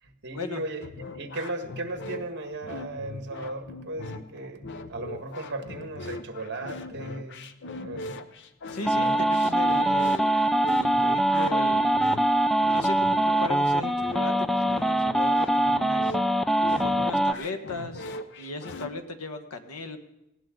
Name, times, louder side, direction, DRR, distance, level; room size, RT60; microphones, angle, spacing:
voice 1, 0.0-7.5 7.8-8.3, right 2 dB, 50° right, 6 dB, 1.7 m, -36 dB
sound 1, 0.8-18.9, left 2 dB, 55° left, 0.8 m, -40 dB
voice 2, 8.7-10.5 10.8-12.0 12.7-16.1 16.7-20.0, left 3 dB, 80° left, 7 dB, 1.5 m, -37 dB
sound 2, 8.8-17.3, right 1 dB, ahead, 0.4 m, -23 dB
18.5 x 16.5 x 3.9 m, 0.91 s
head